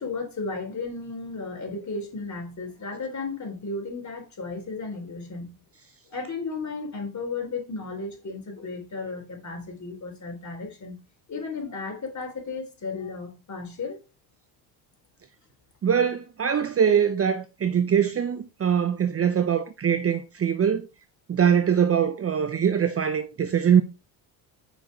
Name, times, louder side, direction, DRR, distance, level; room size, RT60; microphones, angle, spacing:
voice 1, 0.0-5.6 6.1-11.0 11.3-14.0, left 3 dB, 35° left, 3.7 m, -34 dB
voice 2, 15.8-20.9 21.3-23.8, right 8 dB, 30° right, 0.8 m, -22 dB
6.2 x 4.7 x 5.0 m
hypercardioid pair, 75°, 48 cm